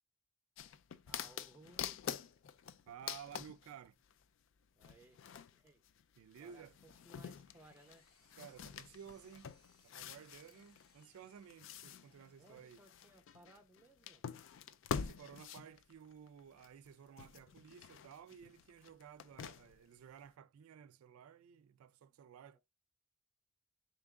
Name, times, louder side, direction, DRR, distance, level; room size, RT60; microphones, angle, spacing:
sound 1, 0.6-4.2 4.8-16.9 17.2-19.9 20.3-20.4, left 7 dB, 60° left, 0.3 m, -47 dB
voice 1, 1.0-2.4 4.7-5.2 5.5-5.8 6.4-8.0 12.4-14.2 22.5-22.6, right 1 dB, 10° right, 0.7 m, -62 dB
voice 2, 2.9-4.0 6.2-6.8 8.3-9.5 9.8-12.8 15.0-22.6, right 8 dB, 80° right, 0.3 m, -55 dB
Engine, 7.1-12.8, left 4 dB, 85° left, 1.1 m, -72 dB
3.6 x 2.9 x 3.5 m
head